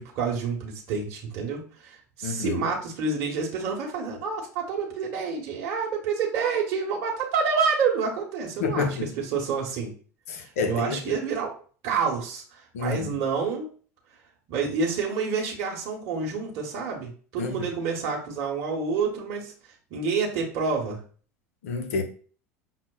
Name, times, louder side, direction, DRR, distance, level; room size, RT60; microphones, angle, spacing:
voice 1, 0.0-9.9 10.4-11.5 11.8-13.7 14.5-19.5 19.9-21.0, right 5 dB, 55° right, 0.9 m, -28 dB
voice 2, 2.2-2.6 8.6-9.1 10.3-11.0 12.7-13.1 17.4-17.6 21.6-22.0, left 5 dB, 75° left, 0.6 m, -28 dB
5.6 x 2.0 x 2.3 m
hypercardioid pair, 80°, 8 cm